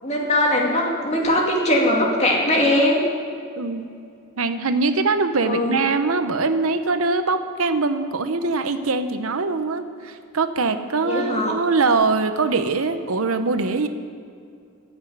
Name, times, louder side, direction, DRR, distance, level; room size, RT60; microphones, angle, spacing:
voice 1, 0.0-3.0 5.4-5.8 11.0-11.5, left 1 dB, 30° left, -1 dB, 2.4 m, -20 dB
voice 2, 3.6-3.9 4.4-13.9, right 3 dB, 85° right, 9 dB, 0.8 m, -22 dB
15.5 x 6.2 x 10.0 m, 2.4 s
head